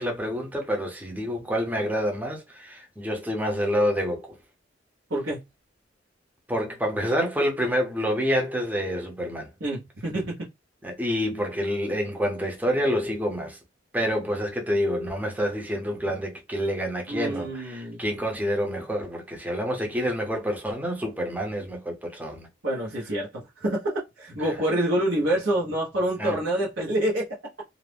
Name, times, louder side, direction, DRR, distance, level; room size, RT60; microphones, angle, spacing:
voice 1, 0.0-4.4 6.5-9.5 10.8-13.6 13.9-22.5 24.4-24.5 26.2-26.4, equal, 10° right, 0.6 m, -28 dB
voice 2, 5.1-5.4 9.6-10.4 17.1-18.0 22.6-27.3, right 1 dB, 85° right, 0.9 m, -27 dB
2.5 x 2.0 x 3.3 m
head